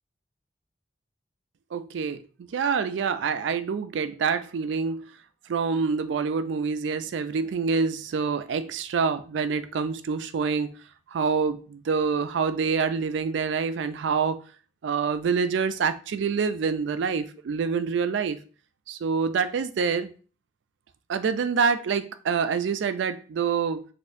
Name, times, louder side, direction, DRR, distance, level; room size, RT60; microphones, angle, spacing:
voice 1, 1.7-2.2 2.5-5.1 5.5-10.7 11.1-14.4 14.8-18.4 18.9-20.1 21.1-23.9, right 5 dB, 85° right, 11 dB, 0.4 m, -26 dB
4.1 x 2.6 x 2.5 m, 0.39 s
head